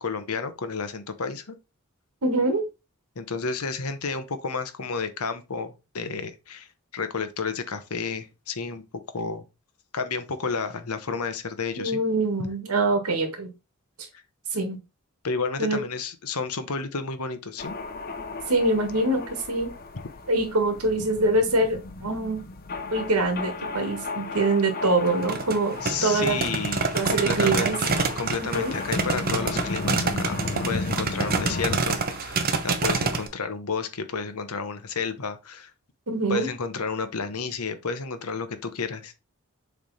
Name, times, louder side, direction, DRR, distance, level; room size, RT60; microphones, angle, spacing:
voice 1, 0.0-1.5 3.2-8.8 9.1-9.4 9.9-12.0 15.2-17.7 25.8-35.7 36.3-39.1, left 4 dB, 85° left, 1.0 m, -31 dB
voice 2, 2.2-2.7 11.8-13.5 14.5-14.8 15.6-15.8 18.5-19.7 20.3-22.4 22.9-26.4 26.9-27.8 28.4-28.8 36.1-36.5, right 2 dB, 90° right, 1.8 m, -24 dB
sound 1, 17.6-31.8, left 3 dB, 45° left, 0.8 m, -35 dB
sound 2, 25.1-33.3, right 4 dB, 45° right, 0.8 m, -27 dB
6.8 x 3.4 x 4.1 m
head